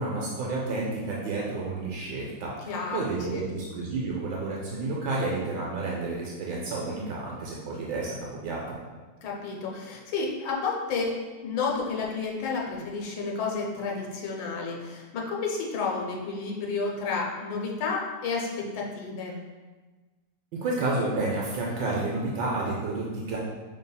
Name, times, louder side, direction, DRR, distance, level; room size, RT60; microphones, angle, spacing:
voice 1, 0.0-8.2 8.4-8.8 20.5-23.4, right 3 dB, 75° right, -4 dB, 1.3 m, -30 dB
voice 2, 2.6-3.5 9.2-11.1 11.4-19.4, left 4 dB, 80° left, -2 dB, 1.4 m, -31 dB
5.3 x 3.4 x 2.2 m, 1.3 s
omnidirectional pair, 2.0 m